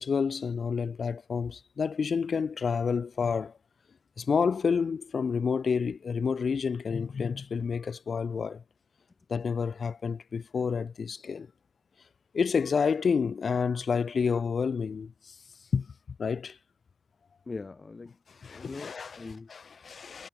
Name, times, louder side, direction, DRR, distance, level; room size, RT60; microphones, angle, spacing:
voice 1, 0.0-3.5 4.2-8.6 9.3-11.5 12.3-15.1 15.7-15.9 16.2-16.6 18.4-19.2 19.5-20.3, left 6 dB, 85° left, 0.4 m, -29 dB
voice 2, 17.5-19.5, left 3 dB, 50° left, 4.9 m, -42 dB
wide cardioid pair, 75°, 0 cm